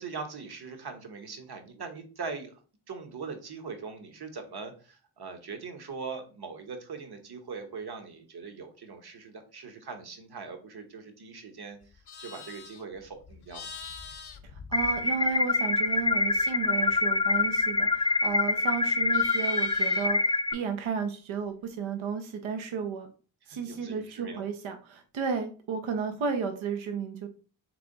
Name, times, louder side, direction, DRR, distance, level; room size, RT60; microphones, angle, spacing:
voice 1, 0.0-2.5 2.9-13.8 23.5-24.4, right 5 dB, 50° right, 6 dB, 1.1 m, -41 dB
Livestock farm animals working animals, 11.8-15.5 15.8-18.4 18.7-20.3, left 5 dB, 55° left, 0.7 m, -46 dB
voice 2, 14.4-23.1 23.5-27.3, right 6 dB, 75° right, 6 dB, 0.7 m, -33 dB
sound 1, 14.7-20.5, left 3 dB, 10° left, 0.3 m, -25 dB
3.4 x 3.3 x 3.8 m, 0.37 s
cardioid pair, 55°, 48 cm